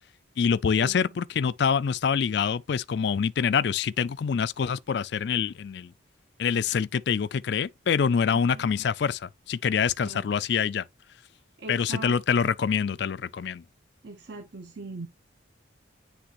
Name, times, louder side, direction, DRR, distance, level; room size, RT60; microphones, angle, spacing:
voice 1, 0.4-5.9 6.4-10.9 11.7-13.6, left 6 dB, 55° left, 0.3 m, -25 dB
voice 2, 8.3-8.6 10.0-10.4 11.6-12.5 14.0-15.1, right 2 dB, 55° right, 0.9 m, -41 dB
10.0 x 3.4 x 3.0 m
head